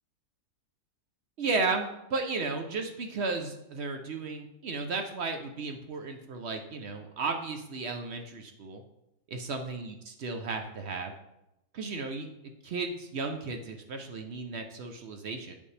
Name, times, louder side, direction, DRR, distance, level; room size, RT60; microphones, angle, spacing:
voice 1, 1.4-8.8 9.3-11.1 11.7-12.3 12.6-15.5, right 4 dB, 60° right, 4 dB, 0.7 m, -34 dB
8.9 x 5.2 x 3.3 m, 0.88 s
omnidirectional pair, 1.7 m